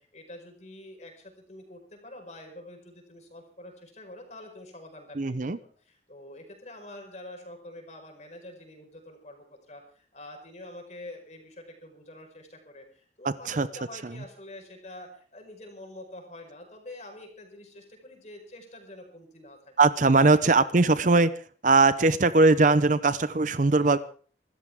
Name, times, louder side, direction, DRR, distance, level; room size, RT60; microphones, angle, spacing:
voice 1, 0.0-5.5 5.8-19.6 20.3-20.9 23.7-23.9, left 1 dB, 40° left, 3 dB, 5.1 m, -46 dB
voice 2, 5.2-5.6 13.2-13.7 14.0-14.1 19.8-21.3 21.6-24.0, right 3 dB, 45° right, 14 dB, 0.7 m, -20 dB
25.5 x 13.5 x 3.6 m, 0.43 s
head